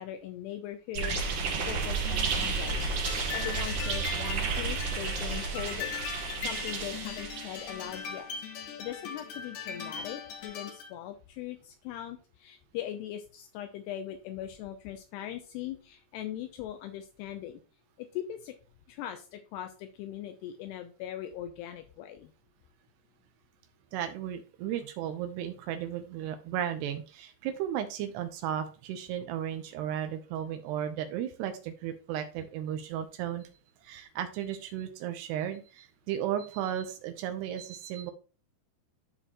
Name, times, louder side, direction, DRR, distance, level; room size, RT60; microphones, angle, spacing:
voice 1, 0.0-2.9 3.3-8.3 8.5-17.6 18.0-18.6 18.9-22.3, left 11 dB, 80° left, 7 dB, 2.6 m, -40 dB
sound 1, 0.9-8.0, right 4 dB, 60° right, 2.6 m, -32 dB
sound 2, 2.1-10.9, left 7 dB, 60° left, 2.4 m, -40 dB
voice 2, 23.9-33.5 33.8-38.1, right 10 dB, 80° right, 7 dB, 2.8 m, -35 dB
11.5 x 4.4 x 2.9 m, 0.35 s
omnidirectional pair, 4.9 m